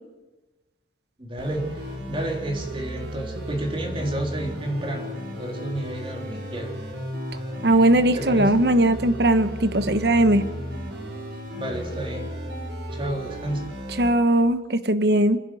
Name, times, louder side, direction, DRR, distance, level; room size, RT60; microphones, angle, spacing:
voice 1, 1.2-5.1 5.4-6.7 8.1-8.5 11.5-12.3 12.9-13.7, right 1 dB, 30° right, 1 dB, 3.9 m, -30 dB
sound 1, 1.4-14.1, equal, 80° right, 6.2 m, -34 dB
voice 2, 7.6-10.5 14.0-15.4, right 1 dB, 65° right, 11 dB, 1.2 m, -19 dB
30.0 x 11.0 x 9.4 m, 1.1 s
head